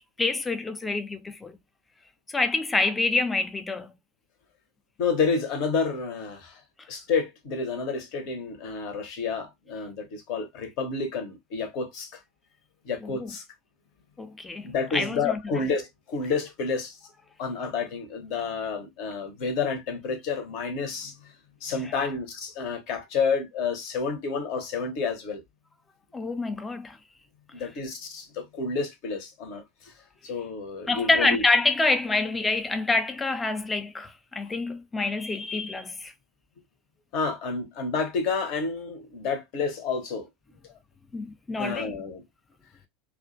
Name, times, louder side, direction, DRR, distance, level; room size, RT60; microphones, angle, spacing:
voice 1, 0.2-1.6 2.3-3.9 13.0-13.3 14.2-15.6 21.8-21.9 26.1-27.0 30.9-36.1 41.1-42.0, left 3 dB, 15° left, 0.4 m, -27 dB
voice 2, 5.0-6.6 6.9-12.1 12.9-13.4 14.6-17.0 17.4-21.1 21.6-25.4 27.5-29.6 30.2-31.4 37.1-40.3 41.6-42.2, left 4 dB, 50° left, 0.7 m, -29 dB
2.4 x 2.1 x 2.5 m
figure-of-eight pair, 85°, 0 cm